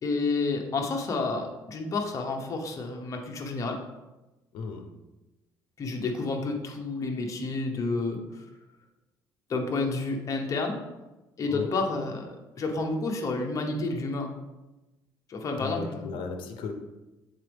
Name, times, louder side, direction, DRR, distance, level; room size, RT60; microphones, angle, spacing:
voice 1, 0.0-3.8 5.8-8.4 9.5-10.8 11.4-14.3 15.3-16.2, left 3 dB, 40° left, 2 dB, 0.9 m, -30 dB
voice 2, 4.5-4.9 11.4-11.7 15.6-16.7, left 5 dB, 75° left, 6 dB, 0.7 m, -36 dB
7.3 x 4.1 x 3.4 m, 1.0 s
cardioid pair, 105°, 8 cm